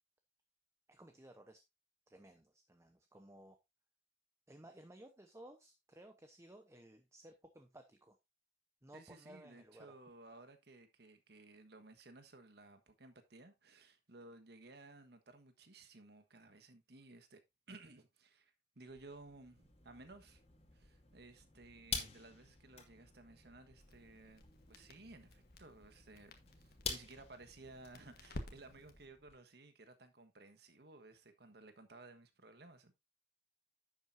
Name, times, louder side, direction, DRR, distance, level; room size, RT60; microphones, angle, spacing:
voice 1, 0.9-1.6 2.1-3.6 4.5-8.2 8.8-9.9, right 1 dB, 15° right, 0.8 m, -58 dB
voice 2, 8.9-17.4 17.7-20.4 20.7-32.9, right 2 dB, 65° right, 1.4 m, -57 dB
sound 1, 18.9-29.4, left 5 dB, 35° left, 2.2 m, -49 dB
Crackle, 23.8-29.1, left 1 dB, 60° left, 1.5 m, -53 dB
10.5 x 7.7 x 2.6 m
head